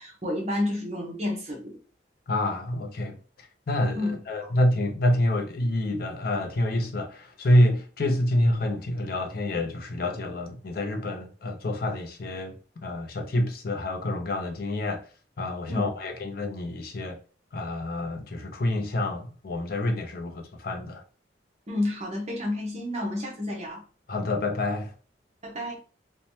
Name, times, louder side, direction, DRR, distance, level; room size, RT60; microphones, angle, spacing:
voice 1, 0.0-1.8 4.0-4.5 15.7-15.9 21.7-23.8 25.4-25.8, left 1 dB, 40° right, 0.7 m, -30 dB
voice 2, 2.3-15.0 15.4-17.2 17.5-21.0 24.1-24.9, left 1 dB, 55° left, 0.5 m, -27 dB
3.1 x 2.1 x 2.7 m
head